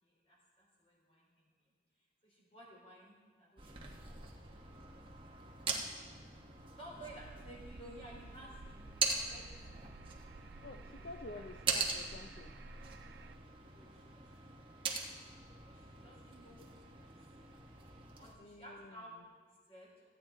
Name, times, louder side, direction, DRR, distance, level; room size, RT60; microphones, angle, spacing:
voice 1, 0.0-1.5 2.2-4.7 5.6-5.7 6.7-9.8 11.0-11.4 13.7-15.1 15.7-17.1 18.2-20.1, right 1 dB, 35° left, -4 dB, 3.7 m, -55 dB
sound 1, 3.6-18.3, right 4 dB, 30° right, 1.1 m, -42 dB
sound 2, 7.0-13.4, right 3 dB, 75° right, 0.4 m, -53 dB
voice 2, 10.6-12.5 18.4-19.0, left 2 dB, 55° left, 6 dB, 0.4 m, -49 dB
15.5 x 9.1 x 3.7 m, 1.5 s
head